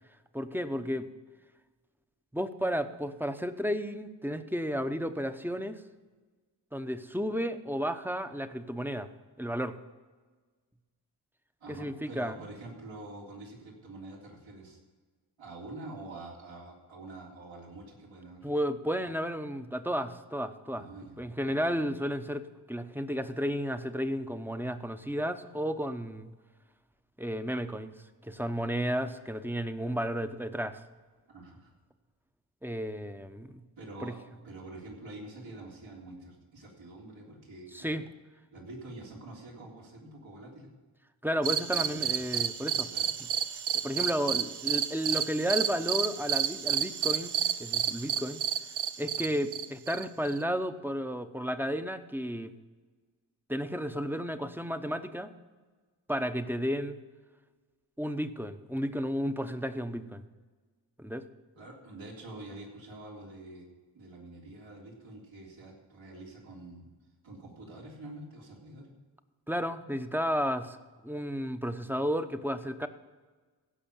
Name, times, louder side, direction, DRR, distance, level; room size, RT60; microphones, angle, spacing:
voice 1, 0.3-1.1 2.3-5.8 6.7-9.1 9.4-9.8 11.7-12.4 18.4-20.9 21.2-26.3 27.2-27.9 28.2-30.8 32.6-33.6 34.0-34.1 37.7-38.0 41.2-42.9 43.7-47.3 47.6-48.4 49.0-52.5 53.5-55.3 56.1-57.0 58.0-60.2 61.0-61.2 69.5-70.8 71.0-72.9, equal, 5° right, 10 dB, 0.8 m, -32 dB
voice 2, 11.6-14.8 15.4-18.5 19.0-19.1 20.7-21.2 21.4-21.7 31.3-31.7 33.8-34.2 34.4-38.0 38.5-40.7 41.7-42.1 42.9-43.1 61.6-63.7 63.9-66.8 67.2-68.9, right 2 dB, 80° right, -3 dB, 3.5 m, -46 dB
sound 1, 41.4-50.4, right 9 dB, 60° right, 0.7 m, -31 dB
16.0 x 5.7 x 7.3 m, 1.4 s
cardioid pair, 65°, 45 cm